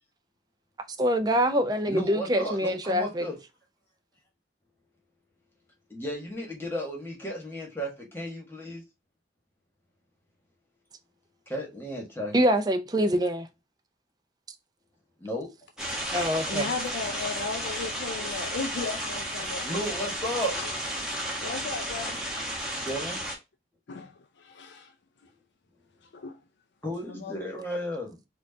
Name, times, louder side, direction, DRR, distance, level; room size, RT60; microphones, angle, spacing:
voice 1, 1.0-3.3 12.3-13.5 16.1-16.7, equal, 20° right, 0.5 m, -25 dB
voice 2, 1.9-3.4 5.9-8.8 11.5-12.4 15.2-15.5 19.6-20.6 22.8-23.2 26.8-28.3, equal, 15° left, 1.3 m, -34 dB
sound 1, 15.8-23.4, equal, 5° right, 1.1 m, -33 dB
voice 3, 16.5-19.7 20.5-20.8 21.4-22.7 23.9-24.9 26.0-26.4 27.1-27.5, left 4 dB, 85° left, 0.5 m, -36 dB
4.5 x 2.4 x 2.6 m
head